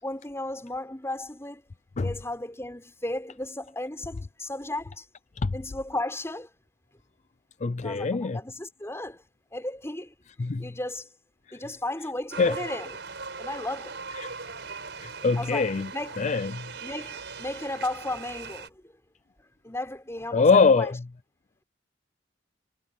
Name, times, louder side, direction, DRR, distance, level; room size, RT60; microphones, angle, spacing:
voice 1, 0.0-1.6 2.0-5.1 5.5-6.5 7.8-9.2 9.5-11.1 11.5-13.0 13.4-14.0 15.4-16.1 16.8-18.9 19.6-20.9, left 1 dB, 15° left, 5.8 m, -35 dB
voice 2, 7.6-8.4 10.4-10.7 11.5-11.6 12.4-12.6 14.2-14.3 15.0-15.9 16.2-16.7 20.3-21.0, left 4 dB, 40° left, 0.4 m, -23 dB
sound 1, 12.3-18.7, right 4 dB, 65° right, 6.5 m, -39 dB
head